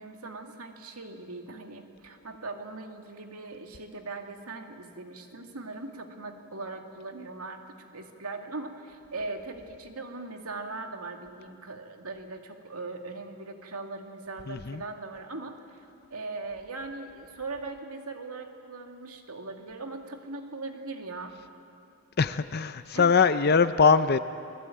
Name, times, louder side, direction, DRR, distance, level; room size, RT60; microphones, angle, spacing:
voice 1, 0.0-15.8 16.1-21.3 22.9-23.2, right 3 dB, 85° right, 4 dB, 2.3 m, -40 dB
voice 2, 14.5-14.8 22.2-24.2, left 5 dB, 45° left, 11 dB, 0.6 m, -22 dB
29.0 x 20.0 x 9.1 m, 2.6 s
head